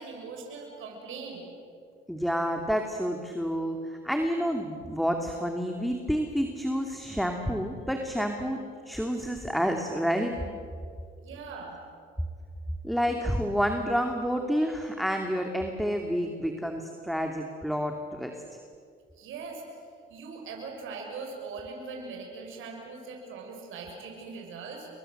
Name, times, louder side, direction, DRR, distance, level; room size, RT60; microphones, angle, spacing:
voice 1, 0.0-1.4 11.2-11.8 19.2-19.6 20.1-24.9, right 4 dB, 85° right, 1 dB, 6.4 m, -40 dB
voice 2, 2.1-10.3 12.8-18.3, equal, ahead, 3 dB, 2.6 m, -29 dB
30.0 x 24.0 x 7.9 m, 2.2 s
cardioid pair, 90°, 20 cm